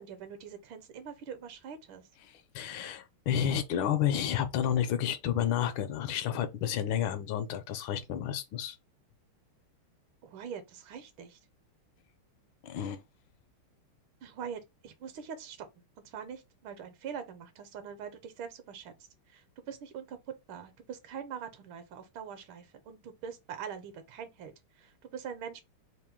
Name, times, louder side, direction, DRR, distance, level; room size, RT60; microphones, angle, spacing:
voice 1, 0.0-2.1 10.2-11.4 14.2-18.9 19.3-25.6, right 7 dB, 75° right, 1.5 m, -43 dB
voice 2, 2.3-8.8 12.6-13.0, left 9 dB, 75° left, 1.3 m, -31 dB
3.7 x 2.5 x 3.6 m
omnidirectional pair, 2.3 m